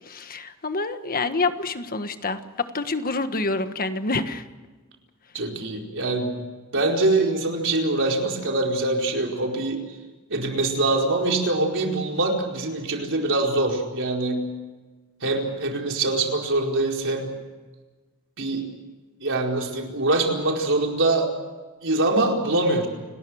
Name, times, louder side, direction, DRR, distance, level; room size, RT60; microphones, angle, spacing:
voice 1, 0.1-2.4 2.7-4.4, left 3 dB, 40° left, 9 dB, 1.5 m, -27 dB
voice 2, 5.3-6.4 6.7-9.8 10.3-14.5 15.2-17.4 18.4-18.7 19.2-21.3 21.8-22.9, right 2 dB, 60° right, 1 dB, 4.6 m, -24 dB
29.0 x 20.0 x 6.4 m, 1.3 s
head